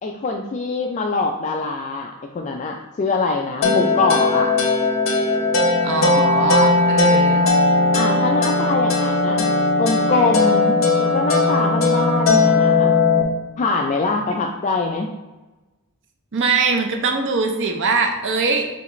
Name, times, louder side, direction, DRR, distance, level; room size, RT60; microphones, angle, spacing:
voice 1, 0.0-4.5 7.9-9.5 9.8-13.0 13.6-15.1, left 3 dB, 35° left, 1 dB, 0.3 m, -23 dB
sound 1, 3.6-13.2, left 3 dB, 65° left, 0.6 m, -18 dB
voice 2, 5.8-7.5 16.3-18.7, right 4 dB, 55° right, 4 dB, 0.6 m, -21 dB
6.7 x 2.4 x 3.0 m, 1.1 s
head